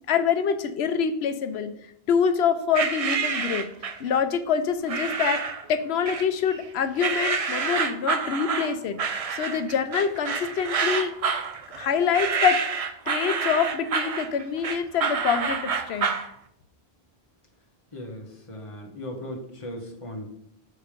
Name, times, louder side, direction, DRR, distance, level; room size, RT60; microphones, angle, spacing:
voice 1, 0.1-1.7 2.1-3.7 4.0-9.0 9.3-11.1 11.8-12.6 13.1-16.1, left 7 dB, 90° left, 10 dB, 0.9 m, -25 dB
sound 1, 2.7-4.1 4.9-5.6 6.1-6.6 7.0-16.3, right 5 dB, 45° right, 0.5 m, -28 dB
voice 2, 17.9-20.3, left 1 dB, 30° left, 1 dB, 1.3 m, -37 dB
6.8 x 4.4 x 5.0 m, 0.73 s
omnidirectional pair, 1.0 m